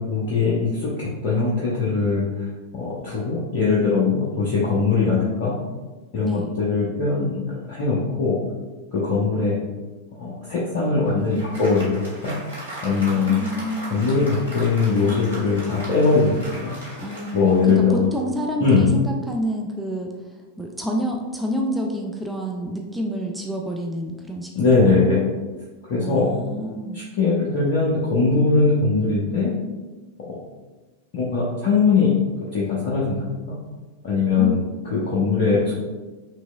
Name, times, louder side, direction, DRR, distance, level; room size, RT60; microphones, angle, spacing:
voice 1, 0.1-2.2 2.7-5.6 6.1-8.4 8.9-9.6 10.2-12.4 12.8-13.3 13.9-16.7 17.3-18.0 18.6-18.9 24.5-25.2 25.9-26.3 26.9-29.5 30.3-30.4 31.1-32.1 32.5-33.6 34.0-34.6 34.9-35.8, left 4 dB, 50° left, -7 dB, 0.9 m, -21 dB
Applause, 10.7-18.3, right 1 dB, 90° right, 1.4 m, -38 dB
voice 2, 13.2-14.1 17.0-20.2 20.6-25.0 26.0-27.0 34.4-34.7, equal, 5° right, 0 dB, 0.5 m, -29 dB
6.0 x 3.0 x 2.2 m, 1.2 s
figure-of-eight pair, 90°, 0 cm